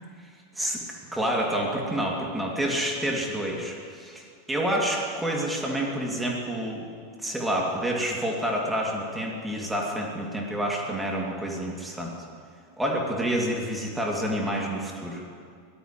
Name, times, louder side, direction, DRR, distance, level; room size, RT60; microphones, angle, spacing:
voice 1, 1.1-6.8 7.2-12.1 12.8-15.3, right 1 dB, 5° right, -1 dB, 2.6 m, -28 dB
23.0 x 17.5 x 3.2 m, 2.2 s
figure-of-eight pair, 85°, 0 cm